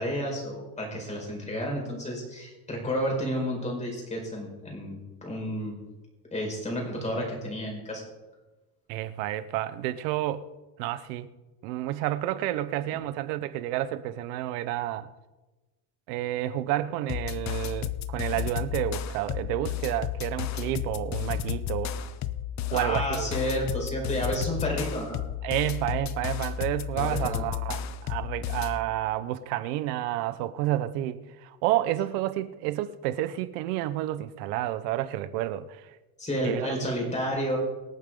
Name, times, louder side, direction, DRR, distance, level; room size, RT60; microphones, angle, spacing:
voice 1, 0.0-5.7 6.3-8.0 12.9-13.0 22.7-25.2 26.9-27.4 36.2-37.6, equal, 15° left, 5.2 m, -31 dB
voice 2, 8.9-10.5 10.8-11.3 11.6-15.1 16.1-21.9 22.7-23.3 25.4-35.9 36.4-36.8, right 14 dB, 80° right, 1.2 m, -30 dB
sound 1, 17.1-28.8, left 10 dB, 35° left, 0.7 m, -32 dB
25.5 x 8.6 x 3.9 m
cardioid pair, 140°, 47 cm